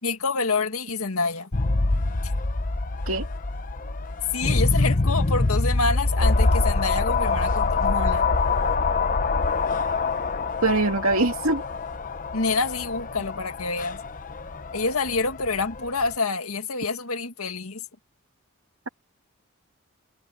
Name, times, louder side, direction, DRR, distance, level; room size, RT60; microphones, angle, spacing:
voice 1, 0.0-1.5 4.3-8.3 12.3-14.0 14.7-17.8, left 4 dB, 90° left, 2.0 m, -27 dB
sound 1, 1.5-16.2, left 3 dB, 40° left, 0.9 m, -25 dB
voice 2, 10.6-11.6, right 2 dB, 75° right, 2.6 m, -22 dB
head